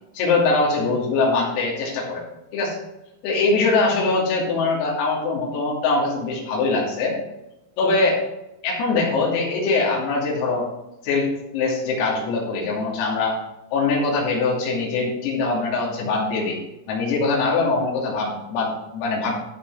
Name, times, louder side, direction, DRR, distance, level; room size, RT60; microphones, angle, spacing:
voice 1, 0.2-2.2 2.5-2.8 3.2-7.2 7.8-8.2 8.6-10.7 11.0-11.3 11.5-13.4 13.7-16.6 16.9-19.3, left 3 dB, 85° left, -4 dB, 5.4 m, -22 dB
15.0 x 6.4 x 3.6 m, 0.94 s
omnidirectional pair, 6.0 m